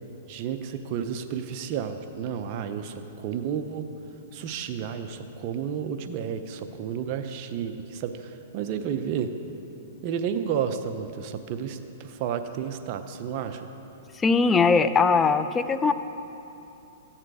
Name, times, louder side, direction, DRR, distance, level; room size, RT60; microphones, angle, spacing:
voice 1, 0.3-3.9 4.3-9.3 10.0-13.7, right 8 dB, 45° right, 8 dB, 0.6 m, -31 dB
voice 2, 14.2-15.9, left 4 dB, 15° left, 10 dB, 0.5 m, -20 dB
13.5 x 10.0 x 4.8 m, 2.9 s
hypercardioid pair, 135°, 0 cm